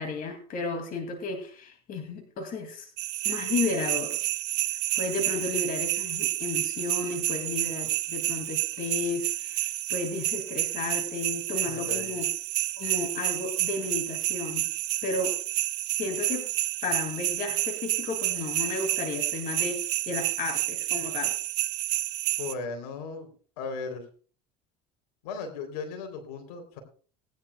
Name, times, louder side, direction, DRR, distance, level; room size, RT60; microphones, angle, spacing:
voice 1, 0.0-2.9 3.2-4.2 4.9-12.3 12.8-14.7 15.0-15.4 16.0-16.5 16.8-21.3, left 3 dB, 50° left, 5 dB, 2.6 m, -33 dB
sound 1, 3.0-22.5, right 16 dB, 60° right, 0.9 m, -30 dB
voice 2, 11.7-12.1 22.4-23.3 23.6-24.1 25.2-26.8, left 4 dB, 75° left, 5 dB, 3.6 m, -36 dB
19.0 x 10.5 x 2.3 m, 0.41 s
hypercardioid pair, 80°, 20 cm